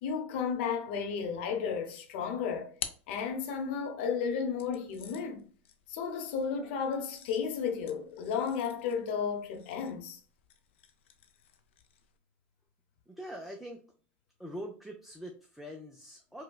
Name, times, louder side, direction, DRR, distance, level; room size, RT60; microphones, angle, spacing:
voice 1, 0.0-2.7 3.1-5.5 5.9-10.2, left 6 dB, 70° left, 0.8 m, -33 dB
sound 1, 2.1-3.9 4.6-12.2, left 9 dB, 90° left, 0.5 m, -49 dB
voice 2, 13.1-13.9 14.4-16.4, equal, 5° right, 0.5 m, -43 dB
4.7 x 2.2 x 2.3 m
supercardioid pair, 115°, 6 cm